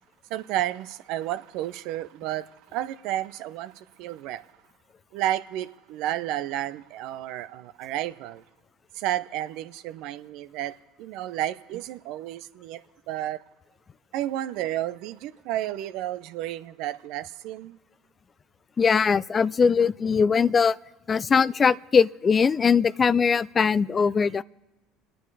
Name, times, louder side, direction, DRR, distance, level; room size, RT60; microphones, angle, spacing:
voice 1, 0.3-4.4 5.1-8.4 8.9-10.7 11.0-12.8 13.1-13.4 14.1-17.8, right 13 dB, 70° right, 0.7 m, -31 dB
voice 2, 18.8-20.8 21.1-24.4, left 6 dB, 30° left, 0.4 m, -21 dB
30.0 x 10.0 x 4.9 m
hypercardioid pair, 75°, 0 cm